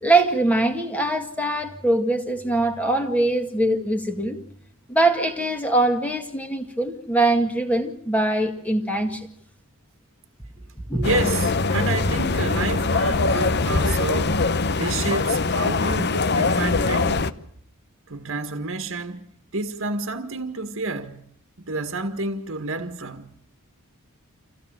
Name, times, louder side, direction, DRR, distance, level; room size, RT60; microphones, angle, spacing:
voice 1, 0.0-4.4 4.9-9.3 10.9-11.1, right 2 dB, 5° left, 1.9 m, -22 dB
sound 1, 11.0-17.3, left 3 dB, 50° left, 0.9 m, -22 dB
voice 2, 11.0-14.4 14.8-17.3 18.1-19.2 19.5-21.2 21.7-23.3, right 3 dB, 60° right, 1.7 m, -29 dB
27.5 x 16.0 x 8.9 m
head